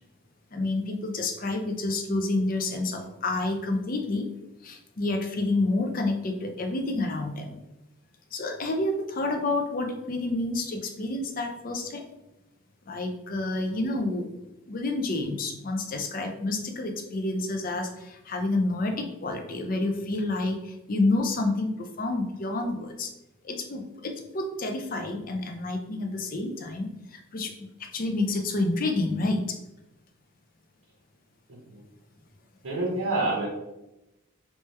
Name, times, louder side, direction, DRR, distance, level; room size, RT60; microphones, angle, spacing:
voice 1, 0.5-4.3 4.6-7.6 8.3-12.0 12.9-14.3 14.7-23.1 23.4-27.7 27.9-29.4, left 2 dB, 40° left, 4 dB, 0.5 m, -29 dB
voice 2, 32.6-33.5, right 2 dB, 90° right, -3 dB, 1.0 m, -27 dB
3.3 x 3.2 x 3.1 m, 0.93 s
head